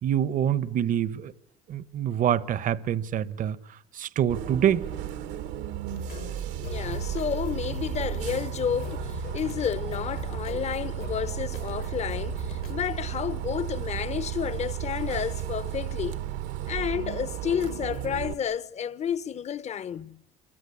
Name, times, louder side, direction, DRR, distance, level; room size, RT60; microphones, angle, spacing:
voice 1, 0.0-1.3 1.7-3.6 3.9-4.8, right 10 dB, 50° right, 1.2 m, -25 dB
Bus, 4.3-18.3, right 11 dB, 80° right, 1.7 m, -34 dB
sound 1, 5.9-12.9, left 9 dB, 60° left, 1.6 m, -41 dB
voice 2, 6.5-16.2 16.6-20.2, left 8 dB, 40° left, 1.1 m, -31 dB
28.0 x 23.0 x 8.3 m
supercardioid pair, 100°, 18 cm